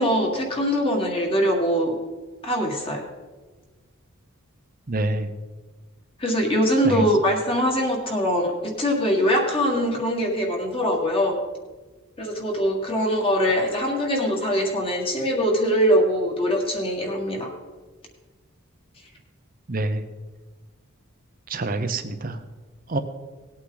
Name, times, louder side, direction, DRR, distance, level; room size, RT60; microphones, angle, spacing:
voice 1, 0.0-1.9 2.4-3.1 6.2-11.4 12.2-17.5, equal, 25° left, 0 dB, 1.9 m, -22 dB
voice 2, 4.9-5.3 6.8-7.0 19.7-20.0 21.5-22.4 22.9-23.0, right 2 dB, 40° right, 8 dB, 0.7 m, -26 dB
18.0 x 8.6 x 4.0 m, 1.3 s
head